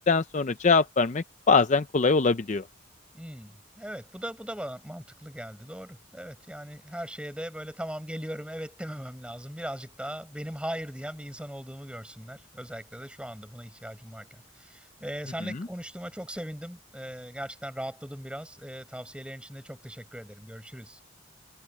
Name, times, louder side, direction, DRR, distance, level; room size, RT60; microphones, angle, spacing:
voice 1, 0.1-2.6, left 4 dB, 35° left, 0.5 m, -23 dB
voice 2, 3.1-21.0, equal, 5° right, 7.3 m, -39 dB
open air
head